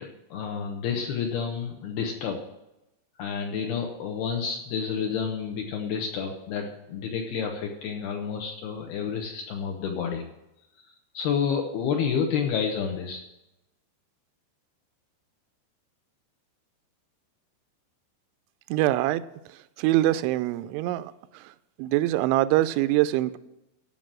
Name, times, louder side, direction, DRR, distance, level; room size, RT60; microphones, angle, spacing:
voice 1, 0.0-2.4 3.2-10.2 11.1-13.2, left 6 dB, 70° left, 2 dB, 2.6 m, -29 dB
voice 2, 18.7-19.2 19.8-21.1 21.8-23.4, right 15 dB, 90° right, 13 dB, 3.0 m, -23 dB
12.5 x 5.8 x 7.5 m, 0.90 s
omnidirectional pair, 5.3 m